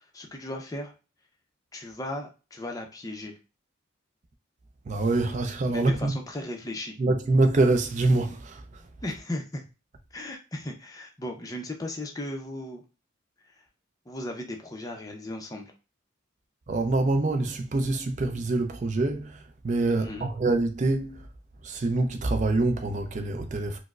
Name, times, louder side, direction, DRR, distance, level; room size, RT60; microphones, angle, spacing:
voice 1, 0.1-0.9 1.7-3.4 5.7-6.9 9.0-9.6 10.1-12.8 14.1-15.7 20.0-20.3, left 1 dB, 15° left, 0.5 m, -36 dB
voice 2, 4.9-6.2 7.0-8.8 16.7-21.3 21.6-23.8, right 2 dB, 35° right, 0.4 m, -25 dB
4.6 x 2.0 x 2.3 m
head